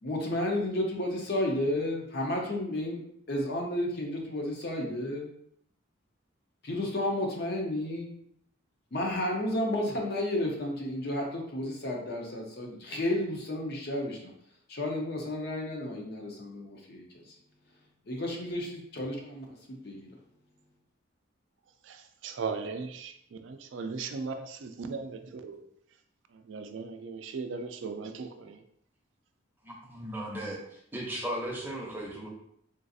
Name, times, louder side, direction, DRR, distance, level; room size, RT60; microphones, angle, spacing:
voice 1, 0.0-3.0 3.3-5.3 6.6-8.1 8.9-14.3 14.7-17.4 18.1-20.1, left 1 dB, 50° left, 0 dB, 0.7 m, -32 dB
voice 2, 22.2-23.1 23.4-25.6 26.5-28.6, right 4 dB, 65° right, 6 dB, 0.3 m, -37 dB
voice 3, 29.6-32.3, right 1 dB, 10° right, -3 dB, 0.6 m, -36 dB
3.8 x 2.4 x 2.6 m, 0.69 s
head